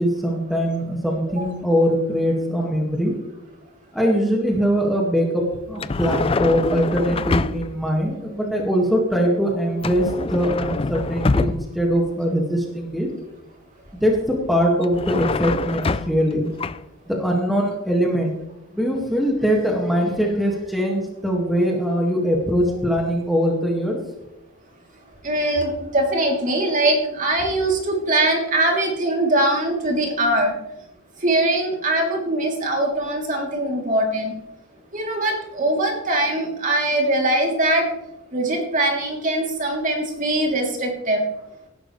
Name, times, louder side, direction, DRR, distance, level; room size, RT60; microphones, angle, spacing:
voice 1, 0.0-3.2 3.9-13.1 14.0-16.5 17.1-18.4 18.7-24.0, equal, ahead, -1 dB, 2.0 m, -22 dB
sound 1, 5.8-7.8 9.8-11.9 14.8-16.3 16.6-16.8, left 3 dB, 30° left, 0.4 m, -25 dB
voice 2, 25.2-30.6 31.2-34.4 34.9-37.8 38.3-41.2, right 1 dB, 40° right, 0 dB, 3.2 m, -22 dB
18.0 x 11.5 x 3.3 m, 0.90 s
head